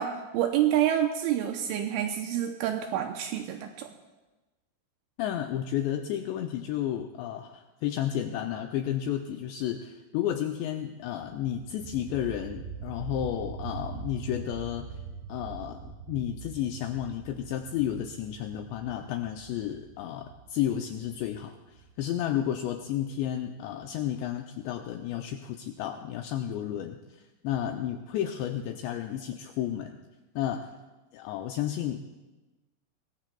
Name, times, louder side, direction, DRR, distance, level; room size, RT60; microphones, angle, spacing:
voice 1, 0.0-3.9, right 11 dB, 85° right, 4 dB, 2.9 m, -28 dB
voice 2, 5.2-14.9 15.3-30.0 30.4-30.7 31.1-32.0, left 11 dB, 90° left, 4 dB, 2.5 m, -32 dB
sound 1, 11.2-22.8, right 6 dB, 35° right, 6.1 m, -43 dB
22.5 x 20.0 x 2.3 m, 1.1 s
omnidirectional pair, 5.7 m